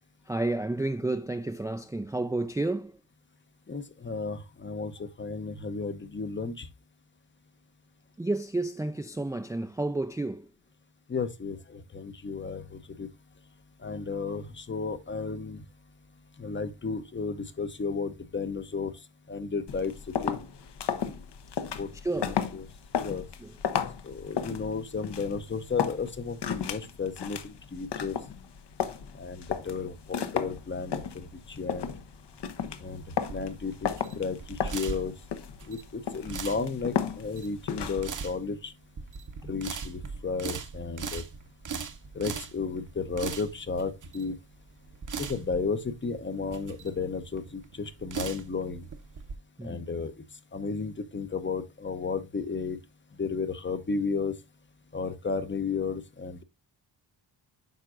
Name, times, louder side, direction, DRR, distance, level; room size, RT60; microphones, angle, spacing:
voice 1, 0.3-3.0 8.2-10.5 22.0-22.3 23.4-23.5 49.6-49.9, right 2 dB, 10° right, 0.4 m, -31 dB
voice 2, 3.7-6.7 11.1-13.1 13.8-15.6 16.4-18.9 19.3-19.9 20.2-20.4 21.8-21.9 22.2-22.7 23.0-23.2 24.0-28.2 29.1-31.9 32.8-33.0 33.3-35.1 35.7-38.7 39.5-41.2 42.1-44.4 45.2-48.8 49.6-50.1 50.5-52.8 53.2-54.3 54.9-56.4, left 4 dB, 25° left, 0.7 m, -33 dB
sound 1, 19.7-38.2, left 8 dB, 65° left, 1.0 m, -34 dB
sound 2, 32.9-49.3, right 5 dB, 45° right, 1.0 m, -39 dB
9.2 x 5.8 x 2.5 m
wide cardioid pair, 120°, 44 cm